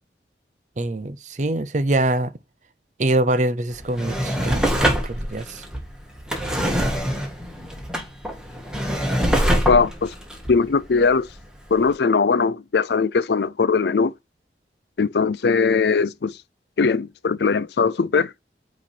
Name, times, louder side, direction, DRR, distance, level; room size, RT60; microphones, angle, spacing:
voice 1, 0.8-2.3 3.0-5.6, right 2 dB, 40° right, 0.6 m, -24 dB
Drawer open or close, 3.7-11.4 11.9-12.0, equal, 5° right, 1.4 m, -24 dB
voice 2, 9.7-10.1 10.5-11.3 11.7-14.1 15.0-16.3 16.8-18.3, left 5 dB, 70° left, 0.5 m, -20 dB
8.7 x 3.1 x 4.2 m
head